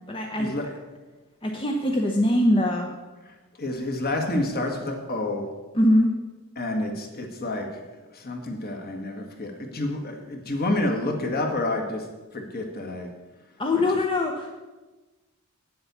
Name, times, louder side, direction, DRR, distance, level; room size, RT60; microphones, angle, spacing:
voice 1, 0.1-0.5 1.4-2.9 5.7-6.1 13.6-14.5, left 1 dB, 25° left, 1 dB, 0.8 m, -22 dB
voice 2, 3.6-5.5 6.6-7.8 8.1-12.1 12.3-13.1, left 2 dB, 45° left, 3 dB, 1.8 m, -29 dB
9.4 x 7.8 x 6.9 m, 1.2 s
head